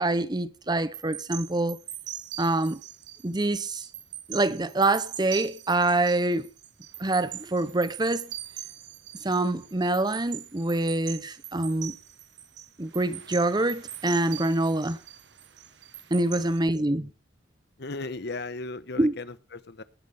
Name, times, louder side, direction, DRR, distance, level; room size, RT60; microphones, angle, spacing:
voice 1, 0.0-1.8 2.4-2.8 3.2-3.8 4.3-6.5 7.0-8.3 9.2-11.9 12.8-15.0 16.1-17.1 19.0-19.1, right 2 dB, 20° right, 0.7 m, -25 dB
sound 1, 0.9-16.6, right 12 dB, 65° right, 1.3 m, -42 dB
voice 2, 16.1-16.6 17.8-19.8, left 3 dB, 60° left, 1.0 m, -37 dB
18.5 x 9.8 x 3.5 m
head